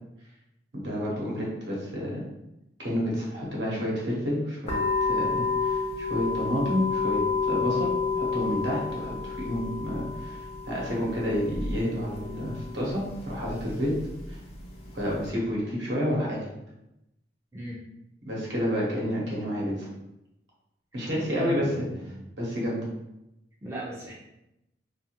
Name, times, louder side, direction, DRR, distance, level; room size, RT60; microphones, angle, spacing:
voice 1, 0.7-2.2 2.8-14.0 14.3-14.4 14.9-16.5 18.3-19.9 20.9-21.9 22.4-22.9, equal, 70° right, -4 dB, 0.9 m, -30 dB
sound 1, 4.7-15.3, left 4 dB, 35° left, 0.5 m, -31 dB
voice 2, 17.5-17.9 21.2-22.3 23.6-24.1, right 1 dB, 15° right, -5 dB, 0.4 m, -37 dB
2.4 x 2.4 x 2.9 m, 0.89 s
head